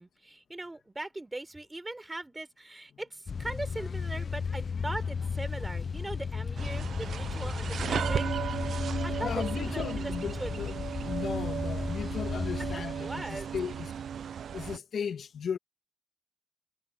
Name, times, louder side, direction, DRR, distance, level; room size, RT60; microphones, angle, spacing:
voice 1, 0.0-8.3 9.0-9.3 9.6-10.1 10.4-10.6 12.7-13.5, right 2 dB, 15° right, 4.5 m, -40 dB
sound 1, 3.3-12.8, left 5 dB, 45° left, 0.5 m, -34 dB
sound 2, 5.1-13.8, left 1 dB, 5° left, 6.2 m, -59 dB
sound 3, 6.6-14.8, right 8 dB, 70° right, 0.5 m, -35 dB
voice 2, 9.2-10.8 11.1-13.9 14.5-15.6, left 7 dB, 65° left, 2.2 m, -36 dB
cardioid pair, 100°, 0 cm